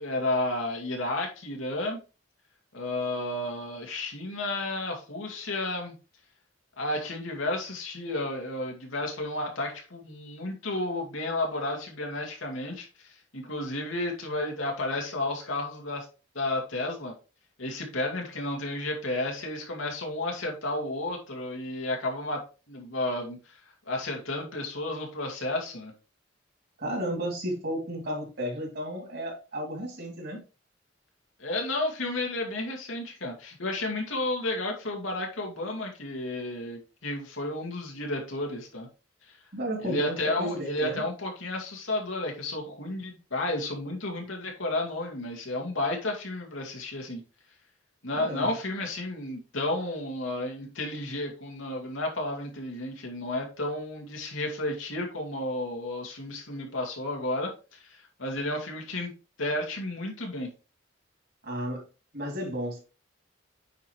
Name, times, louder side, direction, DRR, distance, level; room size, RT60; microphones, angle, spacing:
voice 1, 0.0-2.0 2.7-5.9 6.8-16.1 16.3-17.1 17.6-25.9 31.4-38.9 39.2-39.4 39.8-47.2 48.0-59.1 59.4-60.5, left 2 dB, 90° left, 1 dB, 2.4 m, -32 dB
voice 2, 26.8-30.4 39.5-41.0 48.1-48.5 61.4-61.8 62.1-62.8, equal, 60° right, 1 dB, 3.2 m, -33 dB
9.1 x 4.6 x 3.3 m, 0.32 s
head